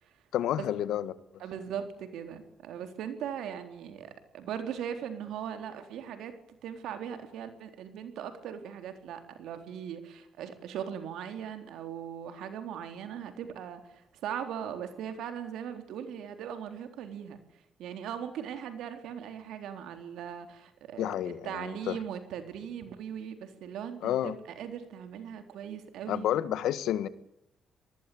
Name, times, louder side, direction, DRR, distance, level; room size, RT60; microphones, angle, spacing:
voice 1, 0.3-1.1 21.0-22.0 24.0-24.4 26.1-27.1, left 11 dB, 85° left, 1.6 m, -30 dB
voice 2, 1.4-6.3 6.6-17.4 17.8-21.1 21.4-26.5, right 8 dB, 85° right, 3.9 m, -39 dB
26.5 x 19.5 x 8.7 m
cardioid pair, 90°, 0 cm